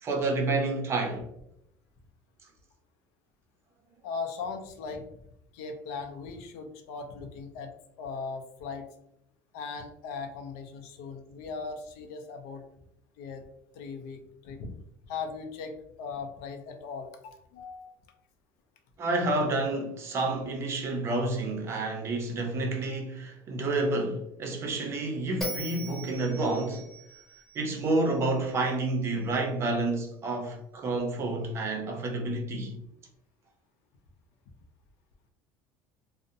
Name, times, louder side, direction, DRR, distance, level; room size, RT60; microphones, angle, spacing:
voice 1, 0.0-1.2 19.0-26.8 27.6-32.8, right 2 dB, 30° right, 0.5 m, -29 dB
voice 2, 4.0-5.1 5.5-7.7 8.0-8.9 9.5-12.6 13.2-13.4 13.7-14.8 15.1-17.9, left 5 dB, 85° left, 0.4 m, -38 dB
Bell, 25.4-28.7, right 1 dB, ahead, 0.9 m, -40 dB
2.5 x 2.0 x 2.6 m
cardioid pair, 150°, 9 cm